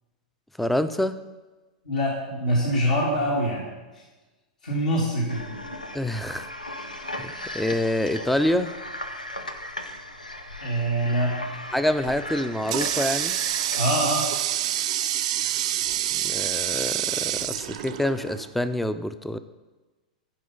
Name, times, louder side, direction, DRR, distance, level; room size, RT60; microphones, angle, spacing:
voice 1, 0.6-1.2 5.9-6.5 7.0-8.7 11.7-13.4 16.1-19.4, left 1 dB, 5° left, 11 dB, 0.5 m, -26 dB
voice 2, 1.8-3.7 3.9-4.0 4.6-5.4 10.6-11.4 13.7-14.3, equal, 70° left, -5 dB, 2.3 m, -24 dB
sound 1, 5.3-13.8, left 1 dB, 85° left, 0.7 m, -37 dB
Water tap faucet, 12.0-18.5, right 12 dB, 50° right, 0.4 m, -27 dB
11.0 x 5.0 x 5.5 m, 1.2 s
figure-of-eight pair, 95°, 4 cm